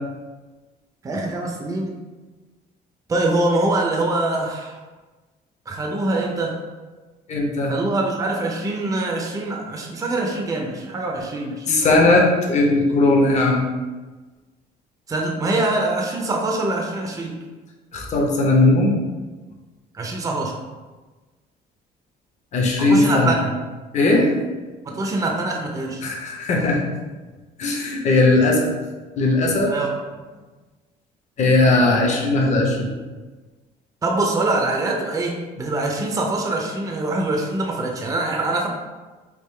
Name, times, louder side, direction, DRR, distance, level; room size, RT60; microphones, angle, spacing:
voice 1, 1.0-2.0 3.1-4.7 5.7-6.6 7.7-12.1 15.1-17.4 19.9-20.6 22.8-23.5 24.9-26.0 29.6-29.9 34.0-38.7, right 2 dB, 20° right, 1 dB, 0.5 m, -24 dB
voice 2, 7.3-7.7 11.7-13.6 17.9-18.9 22.5-23.3 23.9-24.3 26.0-26.8 27.6-28.7 29.2-29.7 31.4-32.9, left 2 dB, 45° left, -1 dB, 0.7 m, -18 dB
3.6 x 2.3 x 3.2 m, 1.3 s
cardioid pair, 110°, 17 cm